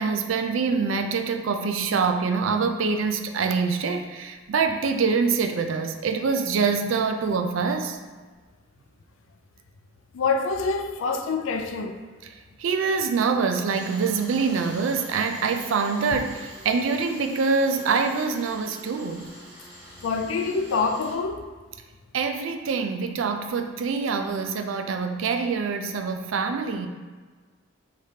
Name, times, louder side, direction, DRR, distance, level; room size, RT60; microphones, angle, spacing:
voice 1, 0.0-8.0 12.6-19.3 22.1-26.9, right 5 dB, 80° right, 6 dB, 0.4 m, -25 dB
voice 2, 10.1-12.0 20.0-21.4, left 4 dB, 90° left, 6 dB, 0.4 m, -26 dB
Tools, 13.7-21.2, right 1 dB, 40° right, 1.5 m, -45 dB
4.9 x 3.2 x 2.8 m, 1.4 s
head